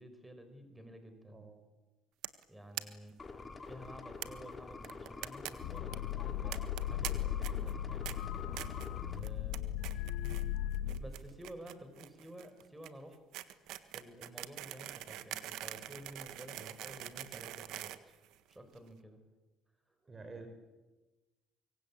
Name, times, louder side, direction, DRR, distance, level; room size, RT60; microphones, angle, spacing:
voice 1, 0.0-1.4 2.5-3.2 3.5-8.3 9.1-9.8 10.8-13.2 13.9-18.2 18.5-19.2, equal, 10° right, 8 dB, 5.4 m, -52 dB
voice 2, 1.3-1.7 9.0-9.5 16.5-16.7 20.0-20.5, right 3 dB, 25° right, 7 dB, 5.0 m, -50 dB
sound 1, 2.2-2.4 2.7-2.8 3.1-3.2 3.4-3.5 4.2-4.3 4.8-5.5 5.8-6.0 6.5-7.1 7.4-7.7 8.0-8.1 8.6-8.9 9.2-9.6 9.8-10.4 10.7-18.8, right 14 dB, 80° right, 1.6 m, -43 dB
sound 2, 3.2-9.2, left 4 dB, 25° left, 3.0 m, -47 dB
sound 3, 5.6-11.0, left 12 dB, 85° left, 1.8 m, -37 dB
25.0 x 24.0 x 8.8 m, 1.2 s
supercardioid pair, 85°, 0 cm